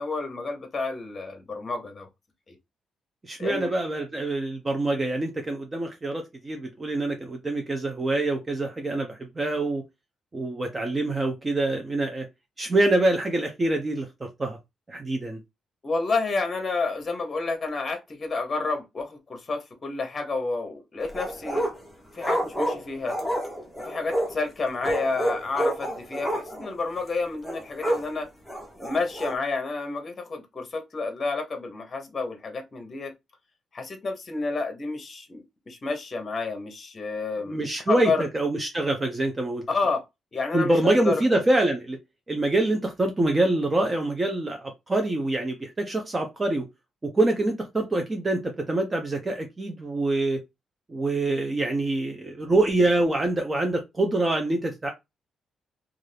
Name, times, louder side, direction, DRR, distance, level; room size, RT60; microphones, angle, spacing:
voice 1, 0.0-2.1 2.5-2.6 3.4-3.7 15.8-21.7 22.2-23.2 23.8-28.3 28.8-33.1 33.7-38.3 39.7-40.0 40.3-41.2, left 3 dB, 30° left, 0.8 m, -30 dB
voice 2, 3.3-9.8 10.3-12.3 12.6-14.6 14.9-15.4 37.5-39.6 40.5-42.0 42.3-46.7 47.0-50.4 50.9-54.9, right 2 dB, 25° right, 0.5 m, -25 dB
sound 1, 21.0-21.9 22.2-24.4 24.8-26.7 27.0-27.1 27.4-28.1 28.5-29.3, equal, ahead, 0.9 m, -28 dB
2.5 x 2.4 x 3.2 m
cardioid pair, 110°, 0 cm